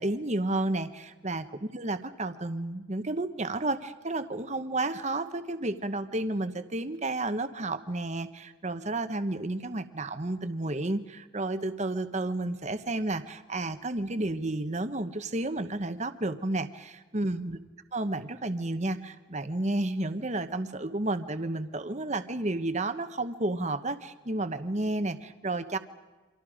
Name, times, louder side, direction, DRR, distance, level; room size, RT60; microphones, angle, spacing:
voice 1, 0.0-17.6 17.9-25.8, right 2 dB, 35° right, 10 dB, 1.0 m, -31 dB
29.0 x 25.5 x 5.0 m, 1.2 s
head